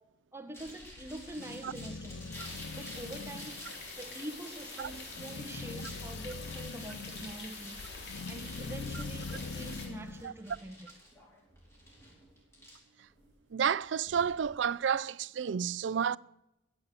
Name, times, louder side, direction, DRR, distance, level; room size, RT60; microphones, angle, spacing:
voice 1, 0.3-2.3 2.7-7.9 8.3-10.9, right 1 dB, 15° right, 1.0 m, -45 dB
sound 1, 0.5-14.5, equal, 15° left, 4.6 m, -52 dB
sound 2, 0.6-10.3, left 3 dB, 80° left, 0.6 m, -43 dB
sound 3, 2.3-9.9, left 3 dB, 60° left, 3.6 m, -46 dB
voice 2, 13.5-16.2, right 7 dB, 85° right, 0.4 m, -30 dB
15.0 x 8.3 x 8.4 m
head